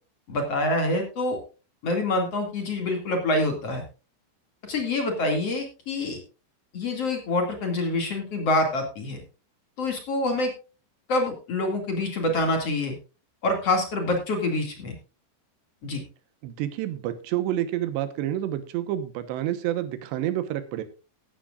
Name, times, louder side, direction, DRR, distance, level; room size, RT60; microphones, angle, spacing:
voice 1, 0.3-1.4 1.8-3.8 4.7-6.2 6.7-9.2 9.8-10.5 11.1-12.9 13.4-14.9 15.8-16.0, left 2 dB, 40° left, 3 dB, 2.9 m, -26 dB
voice 2, 16.4-20.8, right 12 dB, 90° right, 10 dB, 3.4 m, -29 dB
15.5 x 13.0 x 2.5 m, 0.32 s
omnidirectional pair, 4.9 m